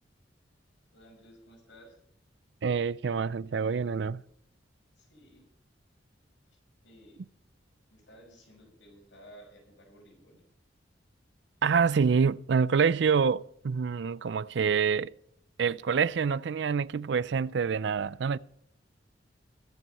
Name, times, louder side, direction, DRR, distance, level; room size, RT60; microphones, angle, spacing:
voice 1, 0.9-2.0 5.0-5.4 6.8-7.3 7.9-10.4, equal, 80° left, 5.8 m, -55 dB
voice 2, 2.6-4.2 11.6-15.1 15.6-18.4, right 6 dB, 70° right, 0.4 m, -26 dB
22.5 x 7.7 x 4.2 m
head